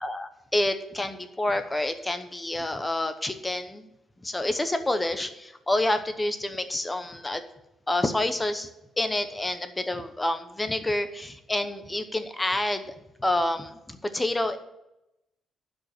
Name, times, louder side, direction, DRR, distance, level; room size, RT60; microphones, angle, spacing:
voice 1, 0.0-3.9 4.2-7.4 7.9-8.7 9.0-12.8 13.2-14.6, left 1 dB, 15° left, 9 dB, 0.9 m, -28 dB
11.5 x 5.3 x 8.1 m, 0.88 s
cardioid pair, 140°, 0 cm